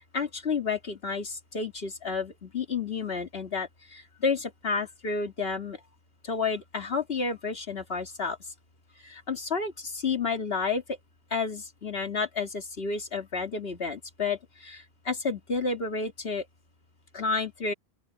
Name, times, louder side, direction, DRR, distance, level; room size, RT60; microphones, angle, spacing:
voice 1, 0.0-5.8 6.2-8.4 9.0-11.0 11.3-16.5 17.1-17.7, left 4 dB, 70° left, 2.4 m, -31 dB
open air
omnidirectional pair, 1.1 m